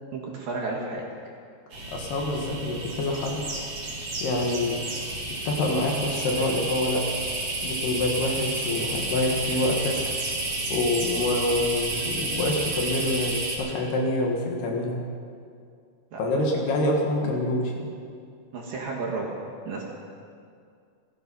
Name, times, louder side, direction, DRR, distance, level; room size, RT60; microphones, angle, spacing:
voice 1, 0.1-1.0 16.1-16.4 17.2-17.4 18.5-19.3 19.7-19.8, right 3 dB, 60° right, -2 dB, 2.9 m, -32 dB
sound 1, 1.7-13.6, right 2 dB, 40° right, 2.5 m, -31 dB
voice 2, 1.9-3.5 4.2-4.8 5.5-7.1 7.6-10.0 10.7-15.0 16.2-17.9, left 2 dB, 65° left, 0 dB, 3.5 m, -26 dB
16.0 x 16.0 x 5.6 m, 2.3 s
omnidirectional pair, 5.4 m